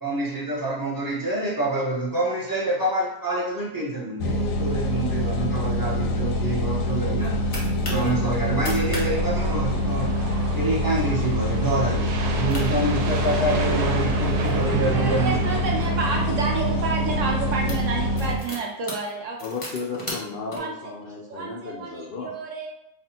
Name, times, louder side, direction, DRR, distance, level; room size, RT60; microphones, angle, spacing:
voice 1, 0.0-10.1 10.5-12.1 12.4-15.4, right 2 dB, 15° right, -6 dB, 0.8 m, -27 dB
sound 1, 4.2-18.4, left 1 dB, 70° left, 0.9 m, -25 dB
sound 2, 6.9-8.1 8.5-9.1 9.3-9.4 9.8-10.1 10.7-10.9 11.4-11.5 12.2-12.3 12.5-13.7 14.3-16.2 16.9-17.1 17.4-20.6, left 1 dB, 25° left, 1.0 m, -37 dB
sound 3, 9.0-17.6, right 5 dB, 90° right, 1.1 m, -31 dB
voice 2, 14.4-19.4 20.5-20.9 21.3-22.7, right 4 dB, 65° right, 0 dB, 0.8 m, -30 dB
voice 3, 19.4-22.3, left 4 dB, 85° left, -2 dB, 0.5 m, -34 dB
5.6 x 2.4 x 2.8 m, 0.83 s
omnidirectional pair, 1.6 m